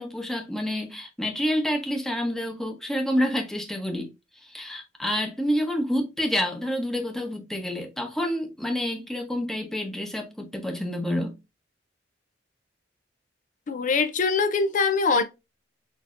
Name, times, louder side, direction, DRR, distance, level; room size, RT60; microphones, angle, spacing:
voice 1, 0.0-4.1 4.4-11.3, equal, 5° left, 0.9 m, -28 dB
voice 2, 13.7-15.2, left 4 dB, 45° left, 0.4 m, -23 dB
6.3 x 2.7 x 2.5 m
head